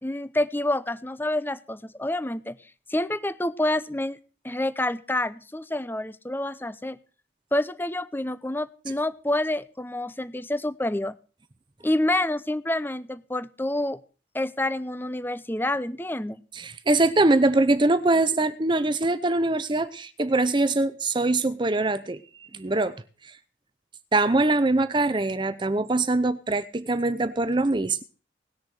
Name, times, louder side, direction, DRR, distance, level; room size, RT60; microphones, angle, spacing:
voice 1, 0.0-2.6 2.9-4.2 4.4-7.0 7.5-11.2 11.8-14.0 14.3-16.4, left 1 dB, 10° left, 0.7 m, -28 dB
voice 2, 16.5-22.2 22.5-23.0 24.1-28.0, right 2 dB, 25° right, 0.7 m, -23 dB
18.5 x 6.8 x 6.4 m
head